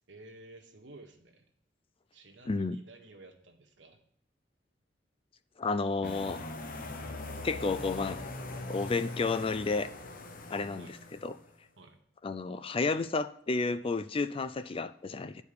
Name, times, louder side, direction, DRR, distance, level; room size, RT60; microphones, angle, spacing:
voice 1, 0.1-1.4 2.1-4.0 10.8-11.0 11.8-12.0, right 2 dB, 80° right, 4 dB, 1.5 m, -53 dB
voice 2, 2.5-2.8 5.6-6.4 7.4-8.2 8.7-9.9 10.5-11.0 11.2-11.4 12.2-15.4, left 3 dB, 30° left, 12 dB, 0.4 m, -31 dB
sound 1, 6.0-11.5, left 2 dB, 50° left, 0.9 m, -41 dB
9.7 x 4.8 x 6.8 m, 0.65 s
head